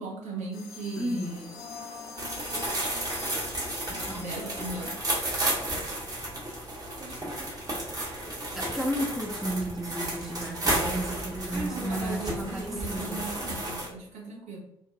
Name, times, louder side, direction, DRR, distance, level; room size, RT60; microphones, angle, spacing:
voice 1, 0.0-1.5 4.2-5.0 6.8-7.4 11.5-14.6, right 3 dB, 50° right, -2 dB, 0.8 m, -38 dB
sound 1, 0.5-6.8, left 5 dB, 70° left, 0.6 m, -45 dB
voice 2, 1.0-1.4 3.9-4.2 8.5-13.2, right 1 dB, ahead, 1 dB, 0.4 m, -33 dB
sound 2, 1.2-8.6, right 1 dB, 80° right, 1.4 m, -50 dB
sound 3, 2.2-13.9, right 1 dB, 25° right, 0.8 m, -32 dB
2.6 x 2.1 x 2.4 m, 0.77 s
figure-of-eight pair, 45°, 15 cm